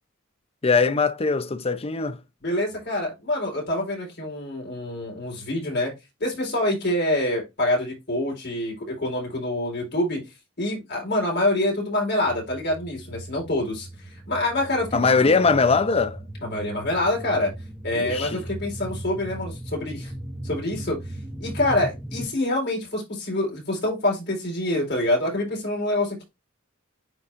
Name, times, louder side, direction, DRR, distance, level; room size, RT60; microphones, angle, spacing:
voice 1, 0.6-2.2 14.9-16.2 17.9-18.4, left 4 dB, 30° left, 0.6 m, -21 dB
voice 2, 2.4-5.9 6.2-10.2 10.6-13.9 14.3-15.3 16.4-17.5 17.8-20.1 20.4-21.0 21.4-26.2, left 1 dB, 55° left, 4.1 m, -26 dB
sound 1, 12.2-22.3, right 1 dB, 5° right, 0.8 m, -38 dB
9.8 x 3.9 x 2.5 m
head